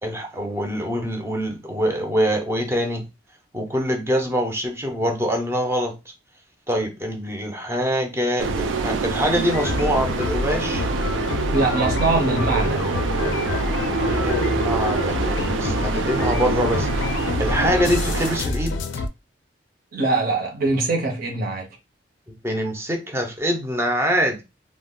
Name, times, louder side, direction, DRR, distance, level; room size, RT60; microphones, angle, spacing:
voice 1, 0.0-3.0 3.5-6.0 6.7-10.8 14.0-18.8 22.4-24.4, equal, 15° right, 0.5 m, -24 dB
sound 1, 8.4-18.4, right 4 dB, 85° right, 0.4 m, -26 dB
sound 2, 9.5-19.1, left 3 dB, 70° left, 0.4 m, -27 dB
voice 2, 11.5-13.1 19.9-21.7, right 3 dB, 50° right, 0.7 m, -23 dB
2.3 x 2.0 x 3.6 m
head